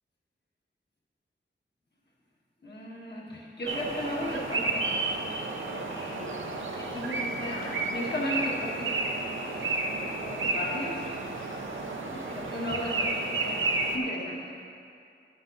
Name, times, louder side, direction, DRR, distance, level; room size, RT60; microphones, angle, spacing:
voice 1, 2.6-5.0 5.7-14.5, left 1 dB, 60° left, -4 dB, 1.8 m, -37 dB
sound 1, 3.7-14.0, right 3 dB, 80° right, 0.8 m, -31 dB
8.8 x 7.7 x 4.1 m, 2.5 s
wide cardioid pair, 70°, 20 cm